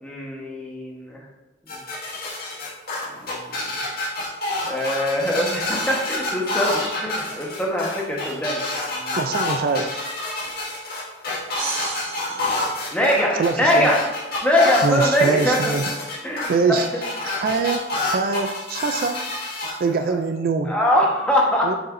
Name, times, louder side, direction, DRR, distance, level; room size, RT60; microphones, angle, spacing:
voice 1, 0.0-1.2 3.2-3.8 4.7-8.7 8.9-9.2 12.3-12.6 12.9-14.0 14.4-15.7 16.2-16.5 16.9-17.0 20.7-21.7, equal, 5° left, -3 dB, 1.2 m, -22 dB
sound 1, 1.7-19.7, left 2 dB, 55° left, 1.9 m, -28 dB
voice 2, 9.2-10.1 13.3-13.9 14.8-15.9 16.5-16.9 17.2-17.8 18.1-19.2 19.8-20.7 21.6-21.7, right 4 dB, 50° right, 7 dB, 0.3 m, -23 dB
sound 2, 11.6-13.5, right 3 dB, 90° right, 1.7 m, -32 dB
6.8 x 6.5 x 2.6 m, 1.1 s
head